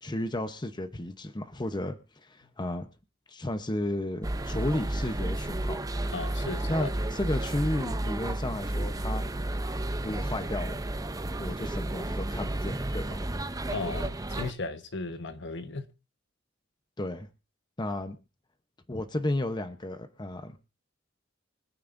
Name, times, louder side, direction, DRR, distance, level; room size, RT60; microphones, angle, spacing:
voice 1, 0.0-2.9 3.3-5.8 6.7-9.2 10.0-10.8 11.4-13.2 17.0-17.3 17.8-18.2 18.9-20.6, left 1 dB, 20° left, 0.9 m, -33 dB
sound 1, 4.2-14.5, right 1 dB, 20° right, 0.6 m, -32 dB
voice 2, 6.1-6.9 13.7-15.8, left 3 dB, 60° left, 1.3 m, -36 dB
24.5 x 9.4 x 2.6 m
head